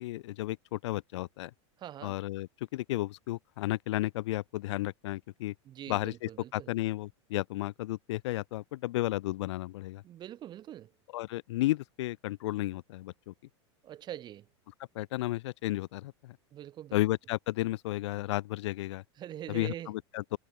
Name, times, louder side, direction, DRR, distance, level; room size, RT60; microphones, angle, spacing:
voice 1, 0.0-1.5 2.0-5.5 5.9-10.0 11.1-13.3 14.9-16.4 16.9-19.0 19.5-20.4, left 17 dB, 75° left, 0.4 m, -33 dB
voice 2, 1.8-2.1 5.7-6.7 10.0-10.9 13.8-14.5 16.5-17.0 19.2-19.9, right 12 dB, 30° right, 1.0 m, -43 dB
supercardioid pair, 130°, 15 cm